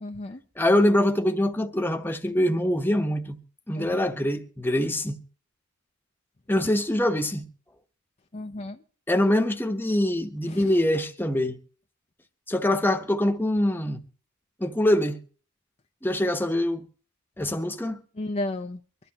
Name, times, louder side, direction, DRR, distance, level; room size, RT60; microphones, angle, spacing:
voice 1, 0.0-0.4 3.7-4.1 8.3-8.8 10.5-10.7 18.2-18.8, left 2 dB, 30° left, 0.6 m, -33 dB
voice 2, 0.6-3.4 3.7-5.2 6.5-7.4 9.1-11.6 12.5-14.0 14.6-15.2 16.0-16.8 17.4-18.0, left 1 dB, 10° left, 1.0 m, -24 dB
24.0 x 11.5 x 2.9 m
head